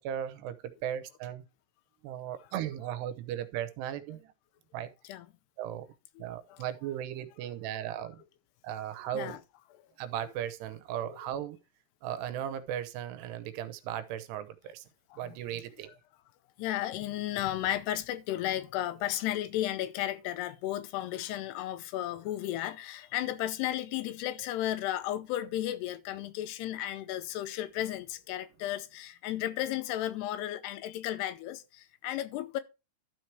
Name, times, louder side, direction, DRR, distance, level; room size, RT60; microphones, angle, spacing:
voice 1, 0.0-1.4 2.0-4.3 4.7-4.9 5.6-5.9 6.2-8.2 8.6-9.4 10.0-11.6 12.0-14.8 15.2-15.9, right 10 dB, 85° right, 2.9 m, -37 dB
voice 2, 6.2-6.6 9.1-9.4 11.1-11.2 15.1-15.4 16.6-32.6, left 13 dB, 85° left, 2.8 m, -34 dB
12.5 x 4.7 x 4.6 m
omnidirectional pair, 4.8 m